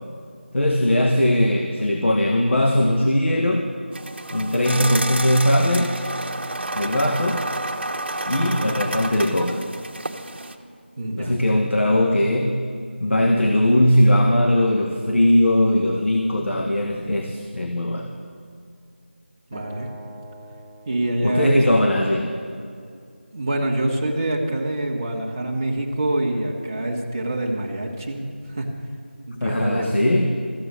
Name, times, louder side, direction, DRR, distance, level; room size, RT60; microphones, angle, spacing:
voice 1, 0.5-3.7 4.3-5.9 6.7-7.5 8.3-9.6 11.2-12.6 13.0-18.1 21.2-22.3 29.4-30.4, left 1 dB, 80° left, 2 dB, 1.5 m, -19 dB
sound 1, 3.9-10.5, right 2 dB, 60° right, 1.1 m, -30 dB
voice 2, 11.0-11.3 19.5-19.9 20.8-21.9 23.3-28.7 29.3-30.0, right 1 dB, 20° right, -2 dB, 1.1 m, -25 dB
Acoustic guitar, 19.5-22.8, right 1 dB, 20° left, 1.0 m, -42 dB
14.0 x 7.7 x 9.7 m, 2.3 s
figure-of-eight pair, 175°, 6 cm